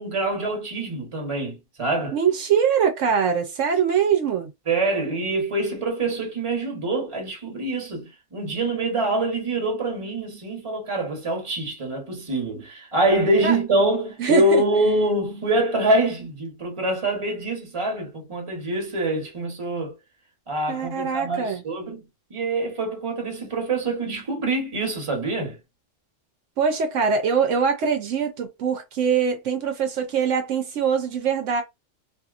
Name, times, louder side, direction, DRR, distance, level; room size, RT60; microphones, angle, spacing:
voice 1, 0.0-2.2 4.7-19.9 20.5-22.0 22.3-25.6, right 2 dB, 25° right, 1.0 m, -25 dB
voice 2, 2.1-4.5 13.4-13.6 14.2-14.6 20.7-21.6 26.6-31.6, right 6 dB, 75° right, 1.0 m, -23 dB
2.8 x 2.6 x 2.4 m
omnidirectional pair, 1.3 m